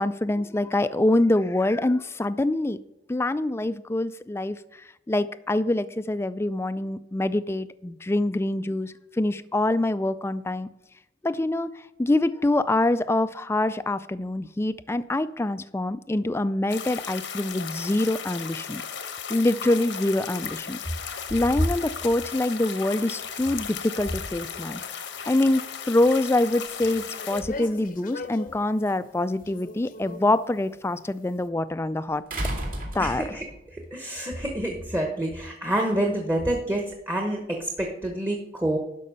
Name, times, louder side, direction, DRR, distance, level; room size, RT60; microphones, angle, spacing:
voice 1, 0.0-2.8 3.1-4.6 5.1-10.7 11.2-11.7 12.0-18.8 19.3-20.8 21.3-24.8 25.3-32.2 32.9-33.2, left 1 dB, 15° left, 14 dB, 0.3 m, -25 dB
sound 1, 16.7-27.4, left 7 dB, 75° left, 1.0 m, -36 dB
sound 2, 25.4-26.0 26.7-29.0 29.4-30.3, left 3 dB, 50° left, 0.7 m, -40 dB
sound 3, 29.0-29.1 32.3-33.6 34.9-35.0, right 1 dB, 50° right, 2.3 m, -31 dB
voice 2, 33.0-38.8, right 1 dB, 15° right, 1 dB, 1.0 m, -28 dB
11.5 x 5.5 x 5.5 m, 0.86 s
head